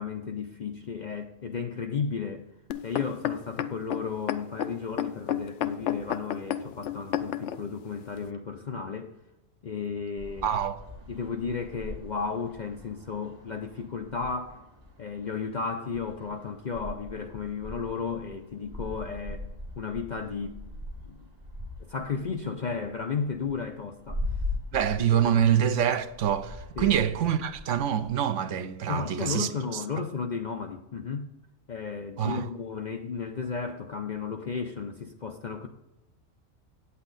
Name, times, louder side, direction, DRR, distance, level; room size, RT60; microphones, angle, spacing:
voice 1, 0.0-2.4 2.8-9.1 9.6-10.5 11.1-14.6 15.0-19.5 19.8-20.6 21.1-21.2 21.8-24.2 25.1-25.4 26.8-26.9 28.9-31.3 31.7-35.7, left 5 dB, 50° left, 0.5 m, -34 dB
sound 1, 2.7-7.6 8.3-8.4, left 10 dB, 70° left, 0.9 m, -31 dB
sound 2, 10.2-28.1, left 1 dB, 50° right, 3.0 m, -41 dB
voice 2, 10.4-10.8 24.7-29.8 32.2-32.5, right 9 dB, 70° right, 0.9 m, -26 dB
8.8 x 8.3 x 4.0 m
omnidirectional pair, 1.4 m